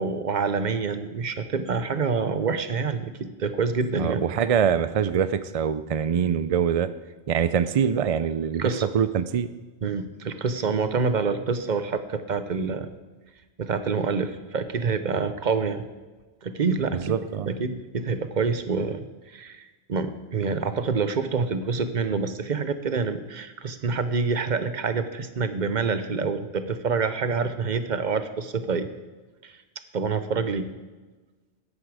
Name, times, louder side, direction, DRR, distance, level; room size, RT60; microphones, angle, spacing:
voice 1, 0.0-4.2 8.6-8.9 9.8-12.9 13.6-15.8 16.4-19.0 19.3-28.9 29.4-29.5 29.9-30.7, right 5 dB, 45° right, 11 dB, 0.8 m, -27 dB
voice 2, 4.0-6.9 7.3-8.7 8.9-9.5 16.9-17.5, right 8 dB, 65° right, 13 dB, 0.3 m, -24 dB
13.0 x 9.8 x 4.8 m, 1.3 s
omnidirectional pair, 1.2 m